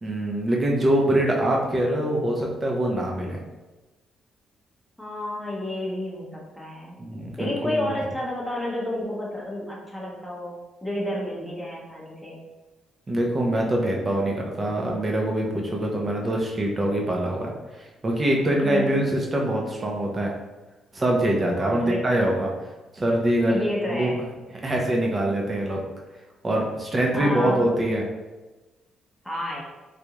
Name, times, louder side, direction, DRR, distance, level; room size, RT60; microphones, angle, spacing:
voice 1, 0.0-3.4 7.0-7.9 13.1-17.5 17.8-20.3 20.9-22.5 22.9-23.6 23.9-24.1 24.6-25.8 26.4-28.0, right 1 dB, 30° right, 0 dB, 0.7 m, -24 dB
voice 2, 5.0-7.0 7.4-12.4 18.6-18.9 21.6-22.3 23.5-24.2 27.1-27.7 29.2-29.6, left 1 dB, ahead, -5 dB, 0.9 m, -30 dB
3.4 x 2.5 x 2.9 m, 1.1 s
cardioid pair, 90°, 0 cm